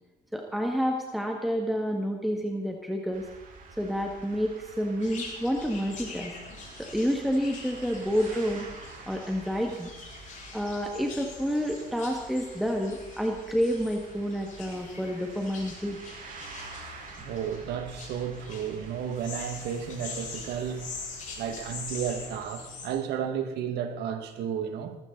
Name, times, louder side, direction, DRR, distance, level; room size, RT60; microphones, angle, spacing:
voice 1, 0.3-3.3 3.8-6.3 6.9-8.7 9.1-9.9 10.5-16.0, equal, ahead, 1.8 m, -29 dB
sound 1, 3.1-22.4, right 4 dB, 50° right, 3.9 m, -48 dB
sound 2, 5.0-22.9, left 4 dB, 50° left, 5.7 m, -44 dB
voice 2, 17.2-20.9 21.4-25.0, right 8 dB, 80° right, 2.0 m, -33 dB
20.5 x 15.0 x 4.0 m
cardioid pair, 110°, 17 cm